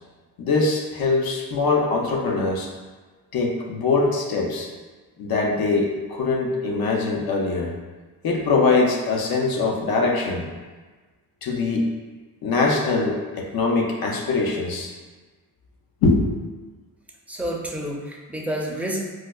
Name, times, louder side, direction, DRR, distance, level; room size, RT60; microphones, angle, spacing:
voice 1, 0.4-2.7 3.3-4.7 5.2-7.7 8.2-10.5 11.4-11.9 12.4-14.9 16.0-16.4, left 3 dB, 85° left, 0 dB, 0.6 m, -22 dB
voice 2, 17.3-19.1, right 1 dB, 5° right, -2 dB, 0.4 m, -29 dB
4.6 x 2.1 x 2.2 m, 1.3 s
cardioid pair, 95°, 35 cm